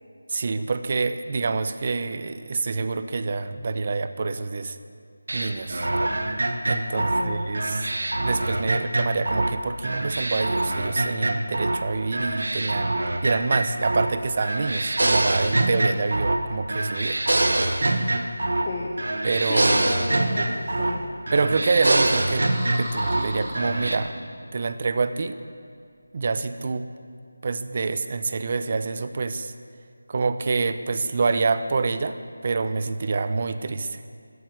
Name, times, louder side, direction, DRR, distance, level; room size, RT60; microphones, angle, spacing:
voice 1, 0.3-4.8 5.3-5.9 6.7-7.9 8.2-17.2 19.2-19.7 21.3-22.5 22.8-24.1 24.5-25.4 26.1-26.9 27.4-29.5 30.1-32.2 32.4-34.0, right 4 dB, 40° right, 11 dB, 0.8 m, -26 dB
sound 1, 5.3-9.6 9.8-11.8 12.1-14.1 14.4-16.4 16.7-18.7 19.0-21.0 21.3-23.2 23.5-24.0, right 2 dB, 70° right, 1.5 m, -24 dB
voice 2, 6.9-7.4 18.4-21.1, left 2 dB, 30° left, -4 dB, 1.8 m, -33 dB
sound 2, 22.2-24.5, equal, 5° left, 4.2 m, -38 dB
14.5 x 9.9 x 9.6 m, 2.3 s
figure-of-eight pair, 165°, 0 cm